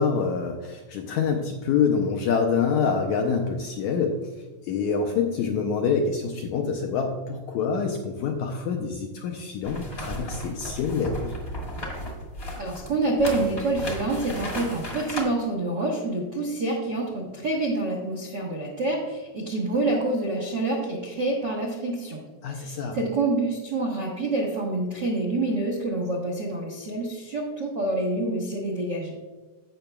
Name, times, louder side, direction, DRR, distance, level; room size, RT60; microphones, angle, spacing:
voice 1, 0.0-4.2 4.6-11.3 22.4-23.0, left 5 dB, 85° left, 2 dB, 1.7 m, -26 dB
sound 1, 9.6-15.2, equal, 40° left, 0.8 m, -34 dB
voice 2, 12.6-22.2 22.5-29.2, right 2 dB, 80° right, 0 dB, 1.0 m, -27 dB
15.5 x 5.9 x 2.2 m, 1.2 s
omnidirectional pair, 4.0 m